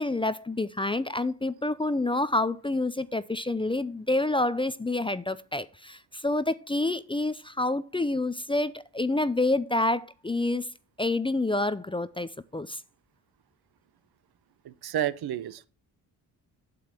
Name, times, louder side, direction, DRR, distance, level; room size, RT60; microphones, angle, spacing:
voice 1, 0.0-10.7 11.0-12.8, left 2 dB, 15° left, 0.5 m, -28 dB
voice 2, 14.6-15.7, right 11 dB, 65° right, 0.8 m, -31 dB
8.4 x 7.8 x 4.4 m
cardioid pair, 80°, 40 cm